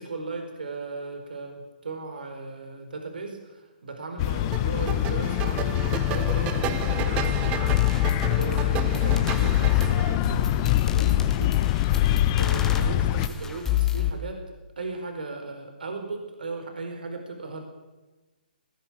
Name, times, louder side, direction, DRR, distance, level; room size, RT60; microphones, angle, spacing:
voice 1, 0.0-11.5 12.4-14.4 14.8-17.6, right 3 dB, 70° right, 4 dB, 4.7 m, -37 dB
sound 1, 4.2-13.3, left 13 dB, 30° left, 0.8 m, -25 dB
sound 2, 4.5-10.2, right 12 dB, 20° right, 1.0 m, -34 dB
sound 3, 7.2-7.3 7.7-14.1, left 12 dB, 10° left, 2.2 m, -28 dB
20.0 x 19.0 x 8.8 m, 1.2 s
hypercardioid pair, 140°, 5 cm